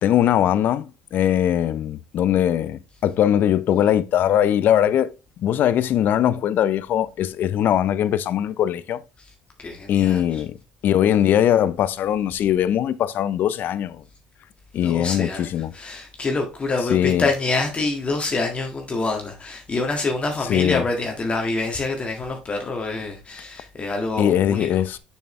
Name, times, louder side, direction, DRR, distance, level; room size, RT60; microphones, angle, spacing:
voice 1, 0.0-5.1 5.4-9.0 9.9-10.5 10.8-14.0 14.7-15.7 16.9-17.3 20.5-20.8 24.2-25.0, left 10 dB, 60° left, 0.6 m, -20 dB
voice 2, 9.6-10.4 14.8-24.7, left 3 dB, 30° left, 1.7 m, -26 dB
6.7 x 6.4 x 3.2 m
hypercardioid pair, 70°, 4 cm